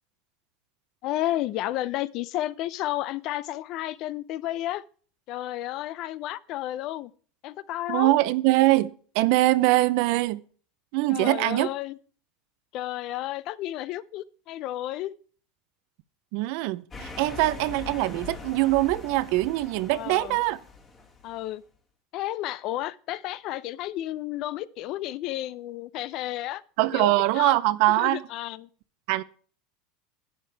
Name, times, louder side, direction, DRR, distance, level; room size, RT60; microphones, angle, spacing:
voice 1, 1.0-4.8 5.3-7.1 7.4-8.1 11.1-11.9 12.7-15.2 19.9-20.4 21.2-21.6 22.1-26.6 26.9-27.5 28.0-28.7, left 14 dB, 45° left, 0.5 m, -32 dB
voice 2, 7.9-10.4 10.9-11.7 16.3-20.6 26.8-28.2 29.1-29.2, right 18 dB, 60° right, 0.6 m, -23 dB
sound 1, 16.9-21.4, left 4 dB, 25° left, 2.1 m, -42 dB
11.5 x 9.5 x 3.4 m
supercardioid pair, 150°, 0 cm